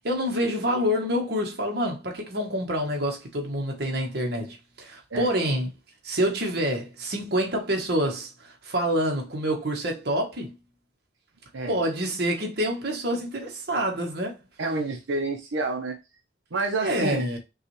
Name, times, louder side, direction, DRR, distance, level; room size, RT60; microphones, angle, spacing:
voice 1, 0.0-5.7 6.0-10.5 11.7-14.4 16.8-17.4, equal, 55° right, 1.1 m, -27 dB
voice 2, 14.6-16.0 16.5-17.2, right 3 dB, 80° right, 0.7 m, -29 dB
5.6 x 2.4 x 3.0 m
head